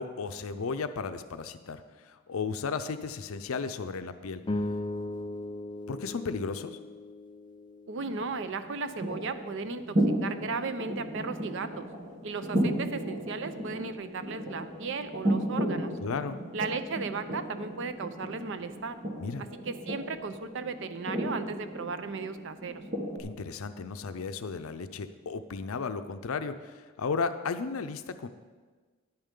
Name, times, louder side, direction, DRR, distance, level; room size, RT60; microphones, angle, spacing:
voice 1, 0.0-4.4 5.9-6.8 16.0-16.4 19.2-19.4 23.2-28.3, left 5 dB, 80° left, 10 dB, 0.5 m, -34 dB
sound 1, 4.4-8.9, left 2 dB, 20° left, 0.4 m, -38 dB
voice 2, 7.9-10.0 10.2-11.9 12.2-15.9 16.5-19.0 19.6-22.8, right 4 dB, 60° right, 11 dB, 0.6 m, -36 dB
sound 2, 8.0-23.2, right 1 dB, 35° right, 1.5 m, -34 dB
11.0 x 8.8 x 3.8 m, 1.4 s
head